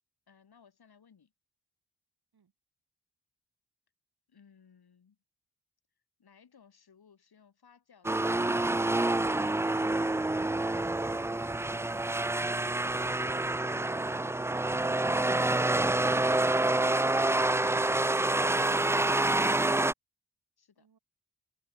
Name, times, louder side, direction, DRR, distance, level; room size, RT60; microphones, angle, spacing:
voice 1, 0.3-1.3 4.3-5.2 6.2-9.2 20.6-20.9, left 6 dB, 70° left, 6.3 m, -61 dB
voice 2, 2.3-2.5 20.7-21.0, right 6 dB, 70° right, 6.5 m, -68 dB
sound 1, 8.0-19.9, right 2 dB, 5° right, 0.3 m, -27 dB
cardioid pair, 70°, 39 cm